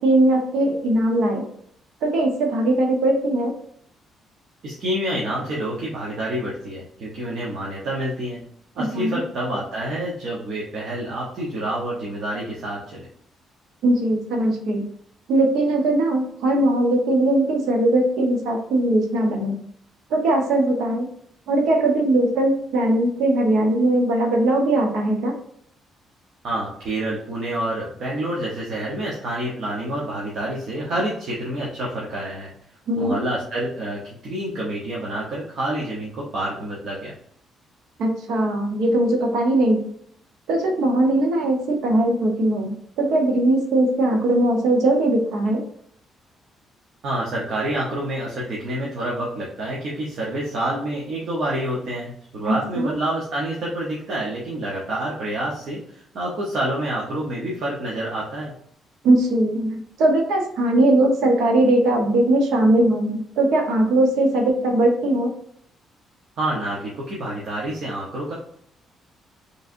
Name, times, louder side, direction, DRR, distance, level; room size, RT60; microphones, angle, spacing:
voice 1, 0.0-1.5 2.0-3.5 8.8-9.2 13.8-14.8 15.3-19.6 20.1-21.1 21.5-25.3 32.9-33.1 38.0-39.8 40.5-45.6 52.5-52.9 59.0-65.3, right 1 dB, 80° right, 3 dB, 1.0 m, -20 dB
voice 2, 4.6-8.4 8.7-13.1 26.4-32.5 33.0-37.1 47.0-58.5 66.4-68.3, right 1 dB, 50° right, -5 dB, 0.9 m, -28 dB
5.1 x 3.2 x 2.6 m, 0.67 s
cardioid pair, 165°, 0 cm